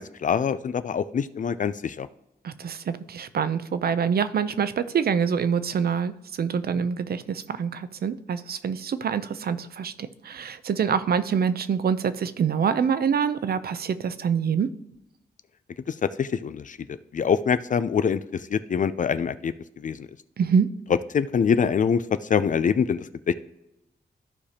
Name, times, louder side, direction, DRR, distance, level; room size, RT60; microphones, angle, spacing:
voice 1, 0.0-2.1 15.9-20.1 21.1-23.3, left 7 dB, 50° left, 13 dB, 0.4 m, -25 dB
voice 2, 2.4-6.1 6.4-14.7 20.4-20.7, right 7 dB, 65° right, 13 dB, 0.5 m, -25 dB
14.0 x 4.9 x 2.8 m, 0.86 s
wide cardioid pair, 100°, 17 cm